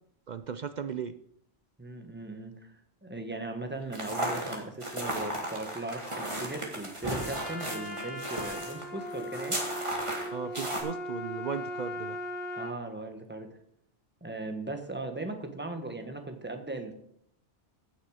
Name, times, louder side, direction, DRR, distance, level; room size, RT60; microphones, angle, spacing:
voice 1, 0.3-1.1 10.3-12.2, right 7 dB, 55° right, 12 dB, 0.5 m, -36 dB
voice 2, 1.8-2.7 3.0-9.6 12.5-13.5 14.2-16.9, right 2 dB, 10° right, 5 dB, 1.3 m, -38 dB
sound 1, 3.9-10.8, right 1 dB, 25° right, 2.2 m, -35 dB
Trumpet, 7.0-12.8, equal, 80° left, 2.7 m, -38 dB
15.5 x 6.6 x 4.9 m, 0.72 s
omnidirectional pair, 1.2 m